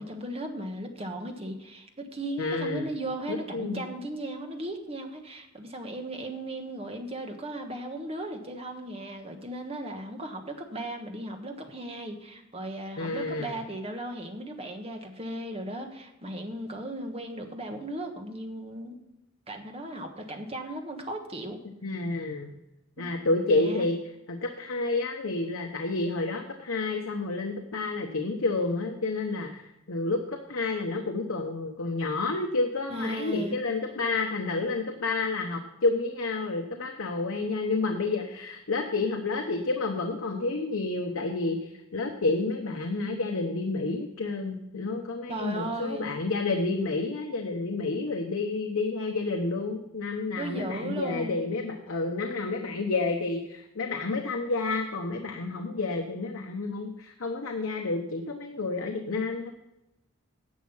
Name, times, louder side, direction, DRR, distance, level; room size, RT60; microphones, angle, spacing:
voice 1, 0.0-19.0 19.5-21.6 23.0-23.1 23.5-23.9 32.9-33.6 45.3-46.2 50.4-51.4, right 1 dB, 30° right, 4 dB, 1.3 m, -36 dB
voice 2, 2.4-2.9 3.3-3.8 13.0-13.5 21.8-22.5 23.0-24.0 24.3-59.5, left 3 dB, 80° left, 3 dB, 1.0 m, -30 dB
11.0 x 7.3 x 5.6 m, 0.92 s
head